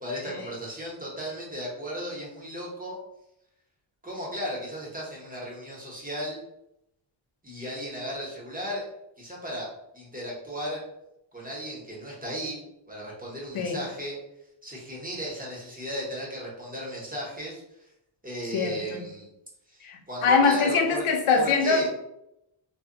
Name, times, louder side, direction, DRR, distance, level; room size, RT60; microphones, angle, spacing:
voice 1, 0.0-3.0 4.0-6.4 7.4-8.9 9.2-9.7 9.9-10.8 11.3-14.2 14.6-17.9 18.2-19.3 19.7-21.0 21.3-21.9, equal, 20° right, -4 dB, 0.7 m, -35 dB
voice 2, 18.5-19.0 19.8-21.9, left 5 dB, 90° left, 3 dB, 0.6 m, -23 dB
2.1 x 2.0 x 3.6 m, 0.83 s
wide cardioid pair, 150°, 49 cm